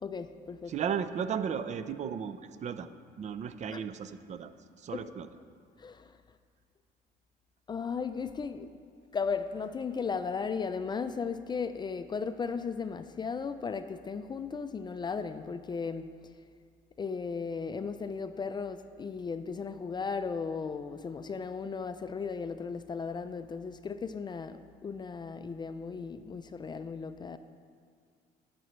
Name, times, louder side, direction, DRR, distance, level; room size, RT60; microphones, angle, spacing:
voice 1, 0.0-0.7 3.7-3.8 4.9-5.1 5.8-6.1 7.7-8.7 9.1-16.0 17.0-27.4, left 5 dB, 25° left, 10 dB, 0.4 m, -36 dB
voice 2, 0.7-2.9 3.2-5.3, right 7 dB, 45° right, 11 dB, 0.5 m, -35 dB
10.5 x 10.0 x 3.1 m, 2.1 s
cardioid pair, 110°, 17 cm